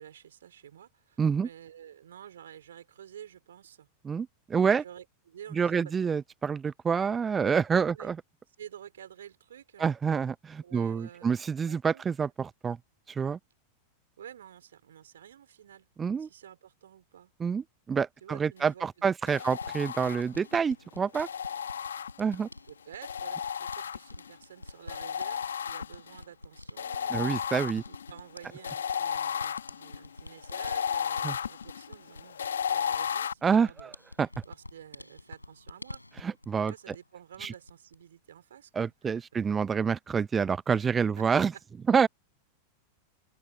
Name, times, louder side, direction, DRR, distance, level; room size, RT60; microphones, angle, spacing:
voice 1, 0.0-3.9 4.8-5.9 7.4-7.6 7.9-8.1 8.6-9.9 10.6-11.4 11.7-12.0 14.2-15.9 16.2-17.3 18.2-19.1 19.4-19.5 22.7-27.4 27.9-33.9 34.4-36.0 36.6-39.2 40.7-40.8, right 10 dB, 65° right, 5.9 m, -50 dB
voice 2, 1.2-1.5 4.1-4.8 5.5-8.2 9.8-12.8 13.1-13.4 16.0-16.3 17.4-21.3 22.2-22.5 27.1-27.8 31.2-31.3 33.4-33.9 34.2-34.4 36.2-36.9 37.4-37.5 38.8-41.5 41.9-42.1, right 6 dB, 20° right, 0.3 m, -27 dB
sound 1, 19.3-20.5 21.1-22.5 23.0-24.3 24.9-26.2 26.8-33.3, left 8 dB, 65° left, 2.4 m, -34 dB
sound 2, 19.6-37.1 37.3-38.0, left 1 dB, 85° left, 6.4 m, -48 dB
open air
figure-of-eight pair, 90°, 0 cm